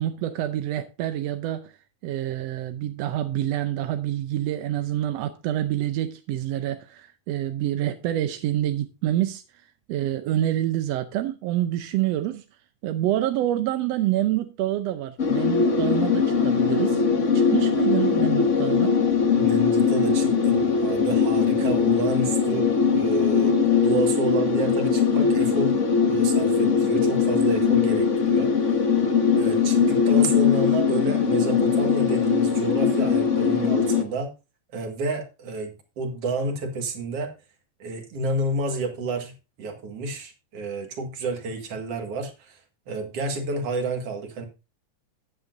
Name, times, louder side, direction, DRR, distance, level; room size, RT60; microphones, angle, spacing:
voice 1, 0.0-1.8 2.0-12.5 12.8-17.0 17.3-19.0, right 13 dB, 75° right, 1.6 m, -27 dB
sound 1, 15.2-34.0, left 6 dB, 45° left, 0.9 m, -21 dB
voice 2, 19.3-25.8 26.0-28.5 29.4-34.3 34.7-37.3 37.8-39.3 39.6-42.6 42.9-44.5, right 3 dB, 55° right, 2.6 m, -30 dB
13.5 x 9.9 x 2.6 m
omnidirectional pair, 3.4 m